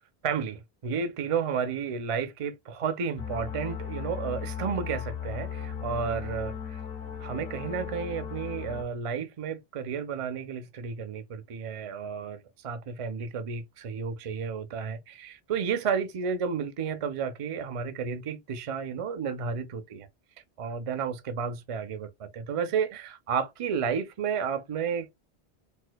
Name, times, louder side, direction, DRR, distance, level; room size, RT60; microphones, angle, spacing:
voice 1, 0.2-6.5 7.2-20.1 20.6-25.2, right 6 dB, 55° right, 0.3 m, -32 dB
sound 1, 3.2-8.8, left 7 dB, 60° left, 0.9 m, -36 dB
4.3 x 2.1 x 2.2 m
omnidirectional pair, 1.1 m